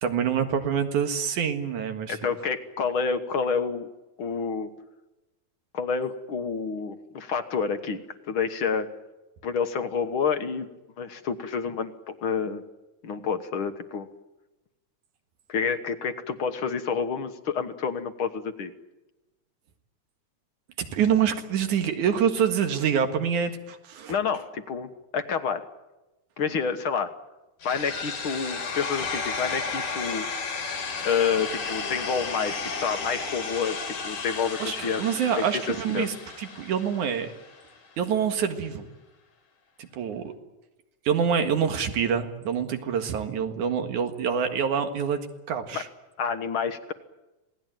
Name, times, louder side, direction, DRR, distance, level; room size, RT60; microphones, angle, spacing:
voice 1, 0.0-2.2 20.8-24.1 34.6-37.3 38.0-38.9 39.8-40.3 41.0-45.2 45.5-45.9, right 7 dB, 75° right, 7 dB, 3.2 m, -26 dB
voice 2, 2.1-3.9 4.2-4.7 5.7-8.0 8.3-8.9 9.4-10.7 11.0-12.6 13.0-14.1 15.5-18.7 24.1-25.6 26.4-27.1 27.6-30.3 31.0-35.0 35.3-35.4 35.9-36.1 45.7-45.8 46.2-46.9, left 6 dB, 55° left, 9 dB, 1.7 m, -28 dB
sound 1, 27.6-37.6, left 4 dB, 85° left, 4.6 m, -33 dB
27.0 x 18.5 x 9.1 m, 1.0 s
omnidirectional pair, 3.5 m